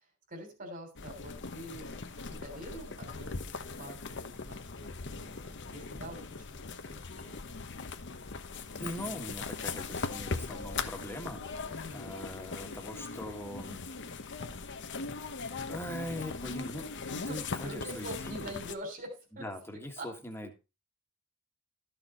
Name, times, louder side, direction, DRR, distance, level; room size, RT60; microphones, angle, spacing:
voice 1, 0.3-2.0 2.3-7.4 11.7-12.1 17.1-19.5 19.7-20.1, right 1 dB, 40° right, 4 dB, 3.3 m, -45 dB
sound 1, 1.0-18.8, left 4 dB, 55° left, 1.0 m, -40 dB
voice 2, 8.8-11.4 11.9-13.8 15.7-16.9 17.3-18.5 19.4-20.6, left 1 dB, 10° left, 4 dB, 1.7 m, -41 dB
13.5 x 6.5 x 4.3 m, 0.29 s
head